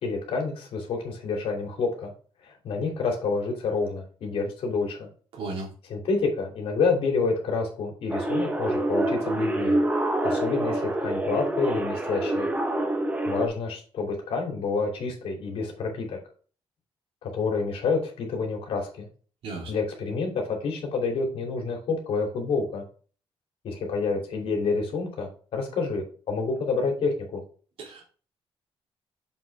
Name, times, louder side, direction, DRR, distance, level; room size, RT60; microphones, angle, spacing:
voice 1, 0.0-2.1 2.4-5.1 5.9-9.8 10.2-12.5 13.2-16.2 17.2-19.1 19.7-22.8 23.6-27.4, left 4 dB, 70° left, 1 dB, 3.0 m, -28 dB
voice 2, 5.3-5.7 19.4-19.7 27.8-28.0, right 3 dB, 70° right, -1 dB, 3.2 m, -35 dB
sound 1, 8.1-13.5, right 1 dB, 15° right, 1.1 m, -26 dB
7.0 x 6.2 x 3.5 m, 0.40 s
cardioid pair, 165°, 10 cm